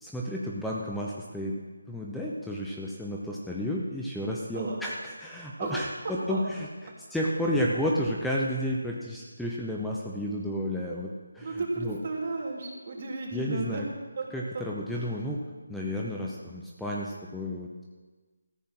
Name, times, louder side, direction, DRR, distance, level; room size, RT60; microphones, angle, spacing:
voice 1, 0.0-1.6 1.9-12.0 13.3-13.8 14.3-15.4 15.7-17.8, equal, ahead, -4 dB, 0.8 m, -32 dB
voice 2, 11.4-13.8 14.2-14.3 14.5-14.6 14.9-15.1, right 3 dB, 45° right, -1 dB, 3.1 m, -33 dB
14.0 x 8.4 x 6.1 m, 1.3 s
figure-of-eight pair, 160°, 0 cm